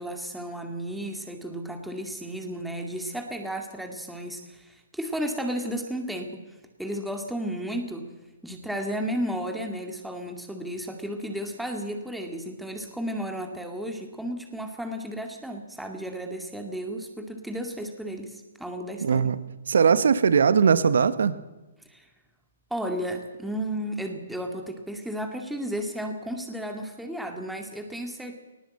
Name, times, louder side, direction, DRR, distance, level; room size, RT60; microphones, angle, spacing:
voice 1, 0.0-6.4 6.8-8.1 8.4-19.3 21.9-22.1 22.7-28.4, equal, ahead, 3 dB, 2.2 m, -33 dB
voice 2, 19.0-19.4 19.7-21.4, right 6 dB, 70° right, 14 dB, 1.1 m, -20 dB
20.0 x 19.5 x 7.8 m, 1.1 s
figure-of-eight pair, 125°, 0 cm